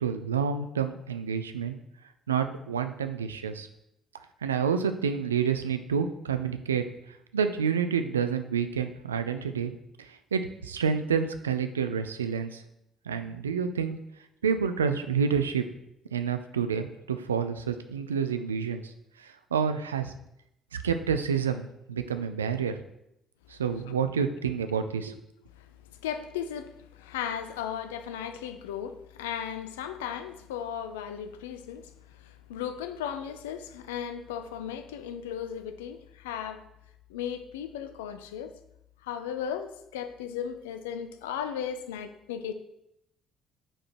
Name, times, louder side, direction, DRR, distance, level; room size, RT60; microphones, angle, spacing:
voice 1, 0.0-1.8 2.3-3.7 4.4-6.8 7.3-9.7 10.0-12.6 13.1-14.0 14.4-15.6 16.1-18.9 19.2-20.1 20.8-22.8 23.5-25.2, right 6 dB, 80° right, 9 dB, 0.4 m, -28 dB
voice 2, 25.5-36.6 37.1-38.6 39.0-42.5, left 8 dB, 75° left, 9 dB, 0.5 m, -36 dB
8.7 x 4.9 x 4.5 m, 0.82 s
figure-of-eight pair, 45°, 0 cm